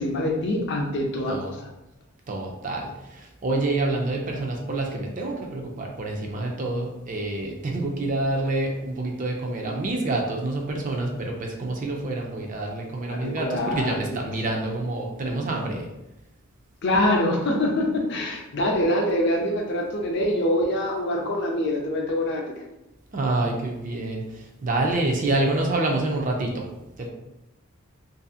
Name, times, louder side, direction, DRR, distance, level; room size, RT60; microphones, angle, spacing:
voice 1, 0.0-1.7 13.1-14.3 16.8-22.4, left 1 dB, 55° left, 0 dB, 0.5 m, -25 dB
voice 2, 2.3-2.9 3.4-15.8 23.1-24.2 24.6-26.6 27.0-27.1, right 2 dB, 40° right, 1 dB, 0.4 m, -27 dB
2.6 x 2.6 x 2.3 m, 0.94 s
head